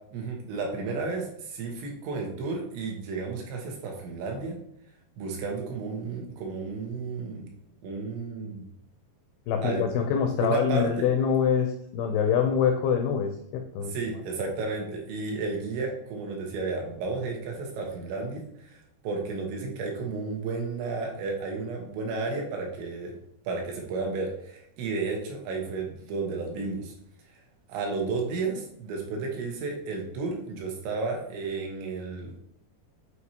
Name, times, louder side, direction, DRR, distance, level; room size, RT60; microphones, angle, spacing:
voice 1, 0.1-4.6 5.2-7.5 7.8-8.6 9.6-9.9 10.4-11.1 13.9-23.1 23.5-26.9 27.7-32.4, right 3 dB, 80° right, 0 dB, 3.5 m, -32 dB
voice 2, 9.5-13.9, left 7 dB, 85° left, 4 dB, 2.2 m, -25 dB
8.3 x 4.6 x 2.8 m, 0.73 s
omnidirectional pair, 5.1 m